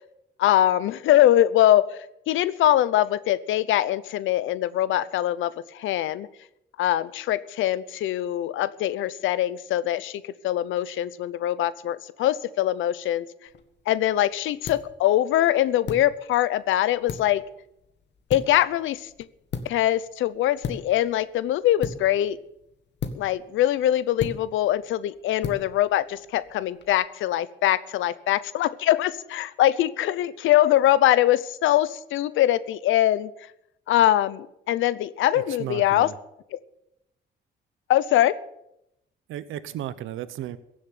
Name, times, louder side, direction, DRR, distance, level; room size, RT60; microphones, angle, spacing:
voice 1, 0.4-1.9 2.3-6.3 6.8-13.3 13.9-17.4 18.3-19.1 19.6-22.4 23.1-33.3 33.9-36.1 36.5-36.6 37.9-38.4, left 13 dB, 85° left, 18 dB, 0.7 m, -22 dB
sound 1, 13.5-26.9, left 6 dB, 60° left, 1.7 m, -39 dB
voice 2, 35.3-36.2 39.3-40.6, right 12 dB, 85° right, 15 dB, 0.9 m, -34 dB
15.5 x 7.6 x 9.3 m, 0.82 s
cardioid pair, 90°, 20 cm